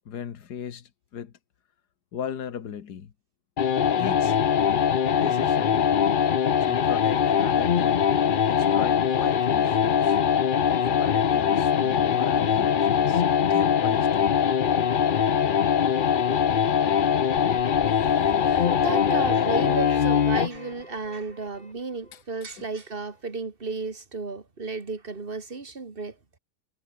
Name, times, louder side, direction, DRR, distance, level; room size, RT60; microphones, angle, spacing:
voice 1, 0.1-1.3 2.1-3.1 4.0-4.4 5.1-5.8 6.6-8.1 8.5-10.2 10.8-13.2 13.5-14.3 22.1-22.7, left 8 dB, 85° left, 2.0 m, -37 dB
sound 1, 3.6-20.6, left 8 dB, 50° left, 0.6 m, -22 dB
sound 2, 17.4-22.2, left 2 dB, 30° left, 3.6 m, -41 dB
voice 2, 18.2-26.2, right 4 dB, 35° right, 2.4 m, -33 dB
omnidirectional pair, 1.7 m